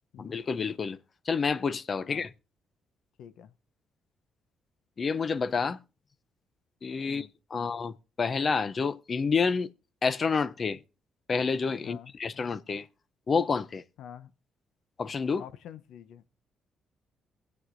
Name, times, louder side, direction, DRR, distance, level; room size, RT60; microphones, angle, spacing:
voice 1, 0.2-1.0 1.3-2.3 5.0-5.8 6.8-9.7 10.0-10.8 11.3-12.9 13.3-13.8 15.0-15.4, left 5 dB, 40° left, 0.5 m, -29 dB
voice 2, 3.2-3.5 7.1-7.3 7.5-7.7 11.8-12.1 14.0-14.3 15.4-16.3, left 9 dB, 80° left, 0.7 m, -47 dB
23.0 x 7.9 x 2.5 m
cardioid pair, 90°, 0 cm